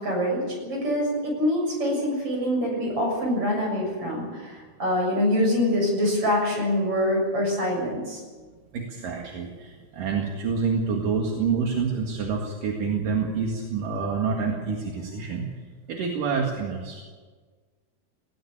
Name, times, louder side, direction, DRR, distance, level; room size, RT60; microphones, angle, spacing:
voice 1, 0.0-8.2, left 1 dB, 30° right, 0 dB, 7.5 m, -25 dB
voice 2, 8.7-15.5 15.9-17.0, right 5 dB, 55° right, 0 dB, 3.0 m, -27 dB
20.0 x 17.5 x 8.8 m, 1.5 s
omnidirectional pair, 5.6 m